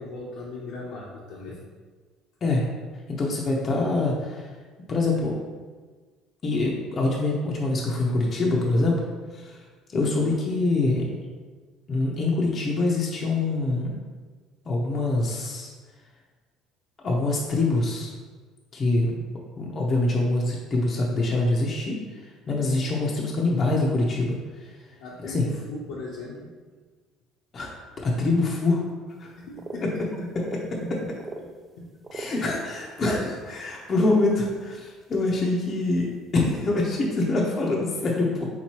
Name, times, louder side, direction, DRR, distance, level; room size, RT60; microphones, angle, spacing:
voice 1, 0.0-1.6 25.0-26.4 29.4-30.3 30.6-31.1 31.4-31.9 32.3-32.5, left 2 dB, 75° left, -6 dB, 0.7 m, -38 dB
voice 2, 3.2-4.5 4.9-5.3 6.4-9.0 9.3-9.6 9.9-11.0 11.9-14.0 14.7-15.7 17.0-18.1 18.7-19.1 19.6-22.0 22.5-24.7 25.2-25.5 27.5-27.7 28.0-28.8 29.2-29.3 32.1-38.5, left 2 dB, 35° left, -2 dB, 0.6 m, -24 dB
sound 1, 29.6-29.8 30.1-30.6 31.2-31.4 32.0-32.3 33.0-33.3 33.9-34.1 35.4-35.5 36.9-37.0, right 3 dB, 20° right, 0.3 m, -38 dB
4.5 x 3.8 x 2.9 m, 1.4 s
cardioid pair, 125°, 0 cm